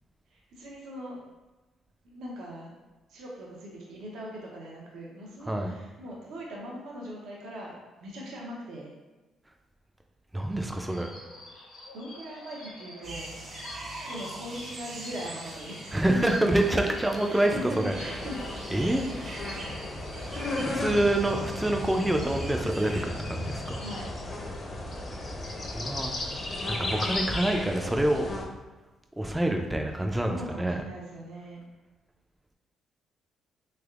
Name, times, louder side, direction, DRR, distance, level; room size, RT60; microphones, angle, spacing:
voice 1, 0.3-1.2 2.0-2.8 3.1-8.9 11.9-13.4 14.0-16.3 17.3-18.4 20.7-21.3 23.8-24.1 30.1-31.6, equal, 80° right, -3 dB, 0.7 m, -40 dB
voice 2, 10.3-11.1 15.9-17.9 18.7-19.0 20.6-23.8 25.7-26.1 26.7-28.3 29.2-30.8, right 1 dB, 10° right, 3 dB, 0.3 m, -26 dB
sound 1, 10.9-24.1, left 1 dB, 85° left, 1.3 m, -47 dB
sound 2, 13.0-23.0, right 2 dB, 45° right, 0.7 m, -43 dB
sound 3, 17.9-28.4, left 2 dB, 35° left, 0.6 m, -35 dB
3.3 x 3.2 x 2.4 m, 1.2 s
cardioid pair, 90°, 0 cm